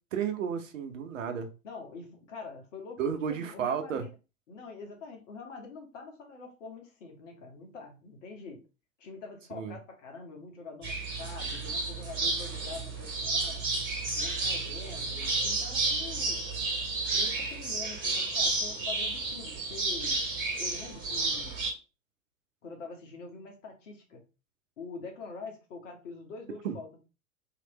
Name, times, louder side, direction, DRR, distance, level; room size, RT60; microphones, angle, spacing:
voice 1, 0.1-1.5 3.0-4.0 9.5-9.8 26.6-26.8, right 7 dB, 65° right, 7 dB, 0.8 m, -32 dB
voice 2, 1.6-4.1 4.5-8.6 9.0-13.7 14.1-16.4 17.1-20.2 20.6-21.6 22.6-24.2 24.8-27.0, left 4 dB, 60° left, 2 dB, 1.5 m, -45 dB
sound 1, 10.8-21.7, right 3 dB, 25° right, 1.9 m, -31 dB
3.3 x 3.1 x 3.0 m, 0.30 s
figure-of-eight pair, 95°, 41 cm